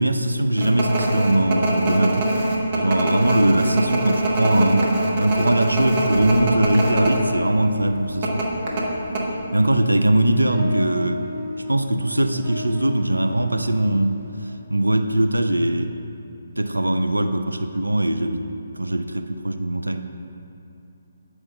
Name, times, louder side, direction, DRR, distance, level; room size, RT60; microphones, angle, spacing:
voice 1, 0.0-2.3 2.7-8.5 9.5-11.2 11.7-14.2 14.7-15.9 16.6-18.5 18.7-20.0, right 1 dB, 80° right, 7 dB, 0.4 m, -21 dB
sound 1, 0.6-7.2 7.5-7.6 8.2-9.2, right 1 dB, 35° right, 0.9 m, -22 dB
sound 2, 6.1-14.6, left 2 dB, 20° right, 1.2 m, -35 dB
8.5 x 4.7 x 3.2 m, 2.6 s
figure-of-eight pair, 140°, 0 cm